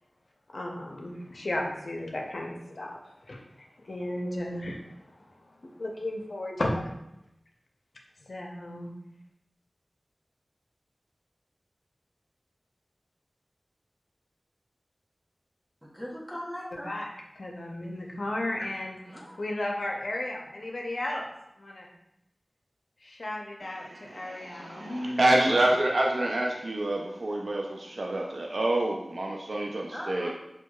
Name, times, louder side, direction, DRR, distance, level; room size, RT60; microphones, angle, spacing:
voice 1, 0.5-3.0 3.3-3.4 3.8-5.2 5.8-6.8 8.3-8.9 16.8-17.1 17.4-19.0 19.4-21.2 21.6-21.9 23.0-25.6, left 1 dB, 70° left, 0 dB, 0.5 m, -34 dB
voice 2, 15.8-16.9 19.0-19.4 29.9-30.3, equal, 5° right, -4 dB, 0.6 m, -39 dB
voice 3, 23.6-30.3, right 1 dB, 75° right, -1 dB, 0.3 m, -27 dB
4.5 x 2.2 x 2.3 m, 0.84 s
wide cardioid pair, 70°, 0 cm